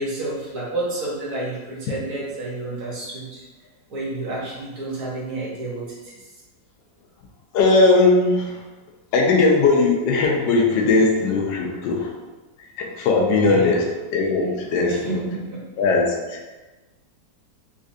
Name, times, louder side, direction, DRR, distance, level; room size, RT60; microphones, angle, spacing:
voice 1, 0.0-3.5 3.9-6.2 13.5-13.8 14.8-15.9, right 2 dB, 55° right, -6 dB, 1.3 m, -30 dB
voice 2, 7.5-8.6 9.1-12.1 12.8-15.2 15.8-16.4, left 3 dB, 80° left, -1 dB, 1.2 m, -19 dB
4.2 x 2.4 x 2.6 m, 1.2 s
omnidirectional pair, 2.0 m